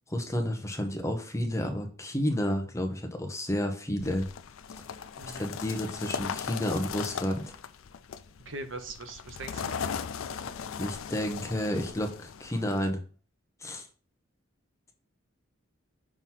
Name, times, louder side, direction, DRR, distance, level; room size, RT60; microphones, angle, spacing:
voice 1, 0.1-4.3 5.4-7.5 10.8-13.0 13.6-13.9, equal, 15° left, 3 dB, 0.9 m, -31 dB
sound 1, 4.0-12.9, left 7 dB, 80° left, 0.4 m, -38 dB
voice 2, 8.4-9.7 10.3-10.4, right 2 dB, 65° right, 7 dB, 1.0 m, -41 dB
6.0 x 3.0 x 5.6 m, 0.39 s
head